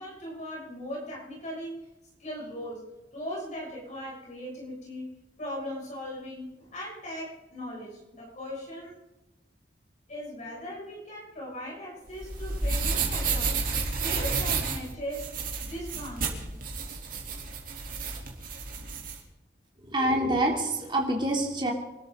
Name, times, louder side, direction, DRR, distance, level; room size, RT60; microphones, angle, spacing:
voice 1, 0.0-1.7 2.2-8.9 10.1-13.6 14.0-15.3 15.6-16.6, equal, 45° left, -4 dB, 7.2 m, -39 dB
sound 1, 12.1-19.2, right 4 dB, 50° right, 3.4 m, -31 dB
voice 2, 19.8-21.7, right 1 dB, 25° right, -1 dB, 3.4 m, -26 dB
26.5 x 13.0 x 4.0 m, 1.0 s
head